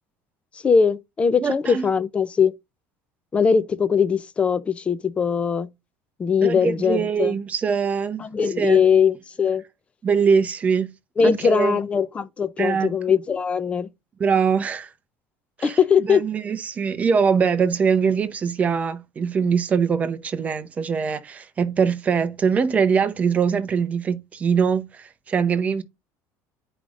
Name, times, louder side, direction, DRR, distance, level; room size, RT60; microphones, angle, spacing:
voice 1, 0.6-2.5 3.3-5.7 6.2-7.4 8.2-9.6 11.2-13.9 15.6-16.2, left 6 dB, 15° left, 0.5 m, -20 dB
voice 2, 1.4-1.9 6.4-8.2 8.6-8.8 10.0-10.9 11.2-11.8 12.6-12.9 14.2-14.9 15.6-15.8 16.1-25.8, right 6 dB, 20° right, 0.7 m, -22 dB
10.0 x 5.0 x 2.5 m
cardioid pair, 170°, 7 cm